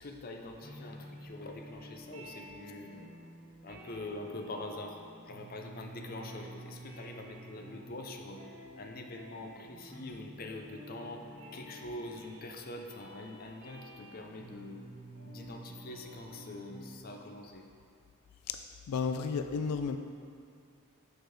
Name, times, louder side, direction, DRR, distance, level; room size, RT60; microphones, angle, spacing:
voice 1, 0.0-3.1 3.6-8.5 8.8-11.3 11.5-14.9 15.3-17.7, left 2 dB, 40° left, 3 dB, 0.5 m, -44 dB
sound 1, 0.6-17.2, right 1 dB, 35° right, 1.6 m, -51 dB
voice 2, 18.5-20.0, left 5 dB, 90° left, 8 dB, 0.3 m, -33 dB
6.9 x 4.5 x 4.7 m, 2.4 s
head